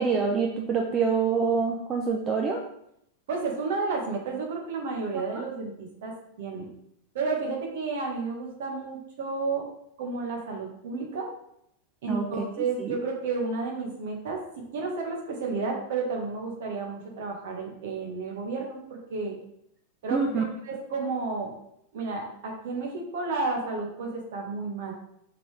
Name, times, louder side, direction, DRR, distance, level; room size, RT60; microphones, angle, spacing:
voice 1, 0.0-2.6 12.1-12.4 12.8-13.0 20.1-20.4, right 5 dB, 25° right, 1 dB, 0.7 m, -26 dB
voice 2, 3.3-6.1 6.4-6.7 7.1-9.7 10.0-11.3 12.0-14.4 14.7-19.3 20.0-21.5 21.9-24.9, right 4 dB, 55° right, 0 dB, 1.7 m, -31 dB
5.9 x 5.5 x 3.3 m, 0.74 s
figure-of-eight pair, 90°, 0 cm